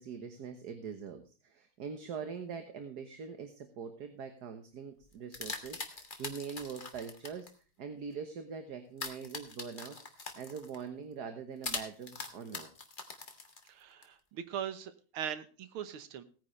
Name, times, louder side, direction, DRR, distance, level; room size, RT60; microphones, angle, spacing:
voice 1, 0.0-7.5 7.8-12.7, right 6 dB, 55° right, 8 dB, 1.6 m, -43 dB
sound 1, 5.0-7.5 9.0-10.8 11.6-14.0, left 3 dB, 25° left, 1.6 m, -42 dB
voice 2, 13.7-16.2, right 9 dB, 80° right, 12 dB, 1.9 m, -40 dB
17.5 x 9.8 x 3.2 m, 0.37 s
omnidirectional pair, 2.4 m